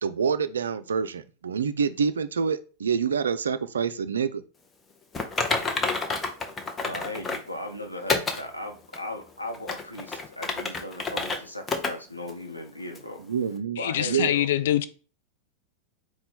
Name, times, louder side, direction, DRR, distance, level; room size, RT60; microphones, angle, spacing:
voice 1, 0.0-4.4 13.2-13.8 14.0-14.3, right 6 dB, 70° right, 0.3 m, -27 dB
Typing, 5.1-7.5 8.1-8.4 8.9-9.0 9.5-11.4 11.7-11.9 12.3-12.4 12.9-13.0, left 3 dB, 20° left, 0.6 m, -28 dB
voice 2, 6.8-13.2 13.8-14.5, left 1 dB, 90° left, 0.8 m, -37 dB
voice 3, 13.8-14.9, left 12 dB, 55° left, 0.3 m, -24 dB
4.3 x 2.2 x 4.1 m
figure-of-eight pair, 90°, 0 cm